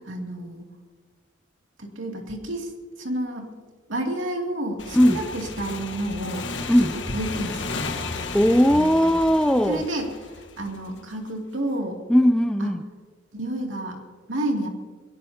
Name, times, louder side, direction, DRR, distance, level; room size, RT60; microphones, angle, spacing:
voice 1, 0.1-0.6 1.8-2.7 3.0-3.5 3.9-6.5 7.1-7.9 8.7-9.2 9.7-12.0 12.6-12.7 13.3-14.0 14.3-14.7, right 1 dB, 90° right, 1 dB, 2.7 m, -30 dB
Motorcycle / Engine, 4.8-11.1, left 3 dB, 70° left, 1.4 m, -34 dB
voice 2, 8.3-9.9 12.1-12.8, equal, 5° left, 9 dB, 0.4 m, -18 dB
22.0 x 18.0 x 2.9 m, 1.4 s
head